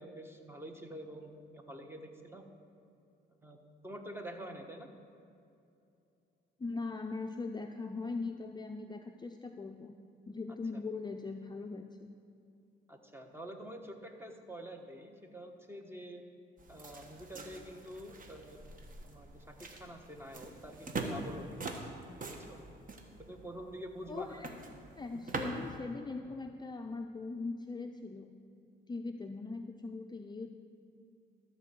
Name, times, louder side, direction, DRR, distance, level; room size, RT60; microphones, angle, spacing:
voice 1, 0.0-2.5 3.4-3.6 3.8-4.9 12.9-16.2 16.7-18.6 19.0-21.6 22.5-22.6 23.2-24.4, equal, 10° right, 4 dB, 1.2 m, -47 dB
voice 2, 6.6-10.0 10.3-12.1 24.1-24.5 25.0-28.3 28.9-30.5, left 3 dB, 20° left, 4 dB, 0.5 m, -40 dB
sound 1, 16.6-25.8, right 3 dB, 45° right, 1.3 m, -44 dB
13.5 x 4.5 x 7.5 m, 2.7 s
cardioid pair, 90°, 20 cm